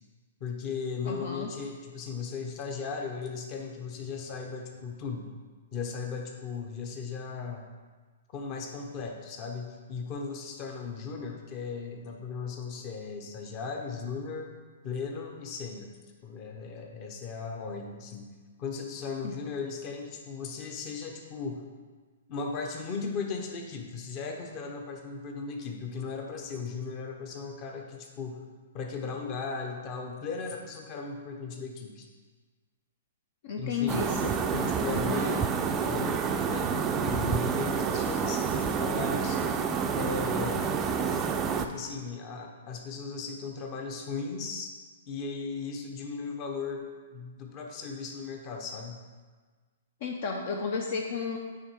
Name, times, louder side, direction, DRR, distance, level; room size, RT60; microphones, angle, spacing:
voice 1, 0.4-5.3 5.7-7.7 8.3-14.5 14.8-15.9 16.2-18.3 18.6-21.7 22.3-28.4 28.7-32.1 33.6-39.4 39.9-40.7 41.6-44.7 45.1-49.0, left 5 dB, 35° left, 3 dB, 0.9 m, -37 dB
voice 2, 1.0-1.5 33.4-35.3 50.0-51.4, left 5 dB, 55° left, 2 dB, 0.6 m, -33 dB
sound 1, 33.9-41.7, right 6 dB, 20° right, 0.4 m, -28 dB
8.7 x 3.4 x 4.7 m, 1.4 s
hypercardioid pair, 145°, 0 cm